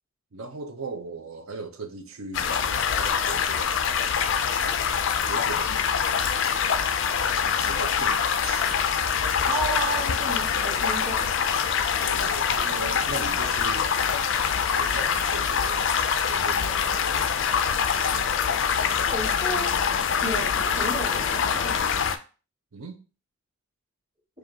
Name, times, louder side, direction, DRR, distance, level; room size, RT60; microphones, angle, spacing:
voice 1, 0.3-3.8 5.3-5.8 7.3-8.8 12.0-13.9 14.8-15.9 16.2-17.4 17.8-18.3 22.7-23.0, right 3 dB, 70° right, 0.6 m, -39 dB
sound 1, 2.3-22.2, left 7 dB, 55° left, 0.3 m, -24 dB
voice 2, 9.5-11.3 19.1-19.7 20.2-21.7, right 1 dB, 25° right, 1.6 m, -32 dB
4.8 x 2.5 x 2.7 m
head